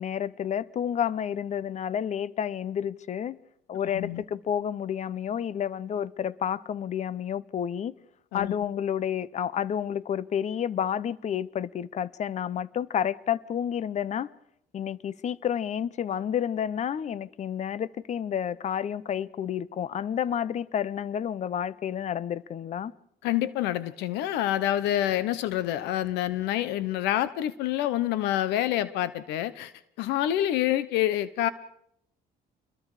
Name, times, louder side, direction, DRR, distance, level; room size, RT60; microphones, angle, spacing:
voice 1, 0.0-3.4 3.7-7.9 8.3-14.3 14.7-22.9, left 9 dB, 45° left, 0.8 m, -30 dB
voice 2, 23.2-29.7 30.0-31.5, left 13 dB, 90° left, 1.0 m, -27 dB
28.5 x 22.0 x 4.9 m
cardioid pair, 110°, 17 cm